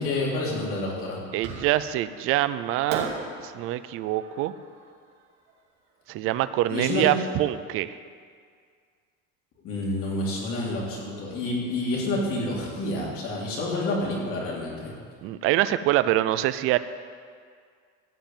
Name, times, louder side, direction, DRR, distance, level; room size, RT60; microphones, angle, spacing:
voice 1, 0.0-1.2 6.7-7.0 9.6-14.9, left 2 dB, 45° left, -4 dB, 3.3 m, -28 dB
voice 2, 1.3-3.1 3.4-4.5 6.1-8.0 15.2-16.8, right 14 dB, 45° right, 13 dB, 0.5 m, -25 dB
Fireworks, 1.4-2.1 2.9-6.0, right 4 dB, 85° right, 2.9 m, -38 dB
15.0 x 5.3 x 9.0 m, 2.1 s
cardioid pair, 170°, 30 cm